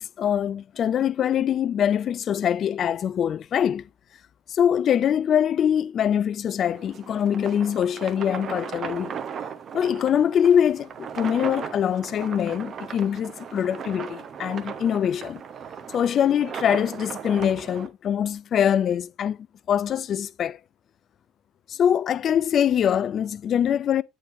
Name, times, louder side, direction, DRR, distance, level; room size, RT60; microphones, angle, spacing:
voice 1, 0.0-3.9 4.5-9.1 9.7-15.4 15.9-19.4 19.7-20.6 21.7-24.0, left 9 dB, 45° left, 0.3 m, -23 dB
sound 1, 6.6-17.9, right 7 dB, 45° right, 0.9 m, -37 dB
9.1 x 4.5 x 2.6 m
hypercardioid pair, 60°, 0 cm